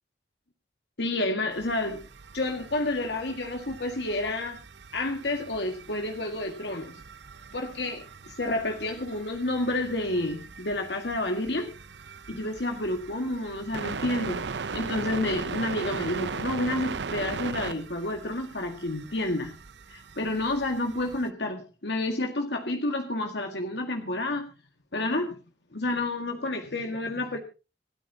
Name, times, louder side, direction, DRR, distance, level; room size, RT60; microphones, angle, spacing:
voice 1, 1.0-2.0 2.3-4.6 4.9-7.0 7.5-11.7 12.3-19.6 19.9-24.5 24.9-25.3 25.7-27.4, left 2 dB, 75° left, 4 dB, 1.9 m, -30 dB
sound 1, 1.5-21.3, right 5 dB, 85° right, 0.7 m, -39 dB
27.5 x 9.2 x 2.8 m, 0.31 s
head